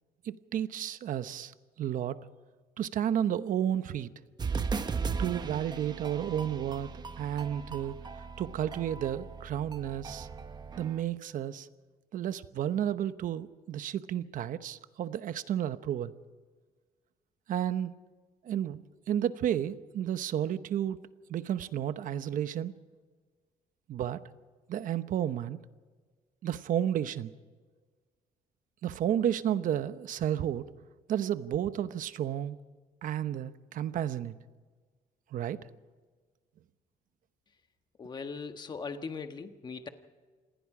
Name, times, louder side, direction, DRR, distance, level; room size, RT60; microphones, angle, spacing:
voice 1, 0.2-1.5 1.8-2.2 2.8-4.1 5.2-10.3 10.8-11.7 12.1-16.1 17.5-18.0 18.4-21.0 21.3-22.8 23.9-24.2 24.7-25.6 26.4-27.3 28.8-30.7 31.1-32.6 33.0-34.3 35.3-35.6, right 10 dB, 60° right, 12 dB, 1.0 m, -32 dB
sound 1, 4.4-11.0, right 5 dB, 25° right, 1.0 m, -37 dB
voice 2, 38.0-39.9, left 5 dB, 30° left, 7 dB, 1.4 m, -39 dB
27.5 x 19.5 x 4.9 m, 1.4 s
cardioid pair, 145°, 16 cm